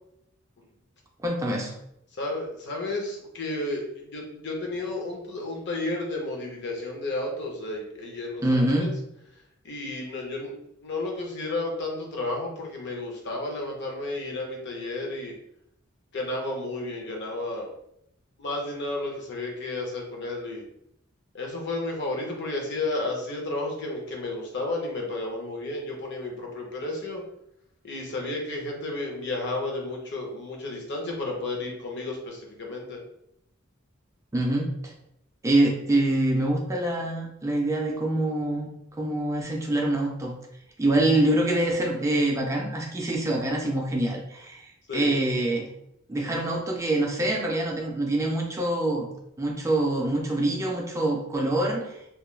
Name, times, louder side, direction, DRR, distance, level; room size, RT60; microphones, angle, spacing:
voice 1, 1.2-1.7 8.4-8.9 34.3-34.9 35.4-38.7 39.0-40.3 40.8-45.7 46.1-49.1 49.4-52.0, right 1 dB, 15° right, 0 dB, 0.3 m, -25 dB
voice 2, 2.2-8.9 9.6-10.5 10.8-15.3 16.1-17.7 18.4-20.6 21.3-27.2 27.8-33.0 44.9-45.2, left 2 dB, 55° left, 0 dB, 0.6 m, -32 dB
2.3 x 2.2 x 3.0 m, 0.76 s
head